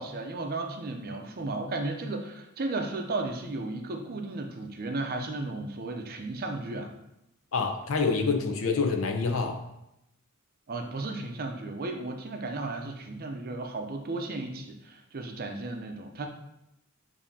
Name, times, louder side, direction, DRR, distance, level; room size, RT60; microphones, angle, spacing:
voice 1, 0.0-6.9 10.7-16.3, right 2 dB, 45° right, 4 dB, 0.5 m, -34 dB
voice 2, 7.5-9.6, left 4 dB, 65° left, 4 dB, 0.6 m, -27 dB
7.0 x 2.7 x 2.7 m, 0.85 s
head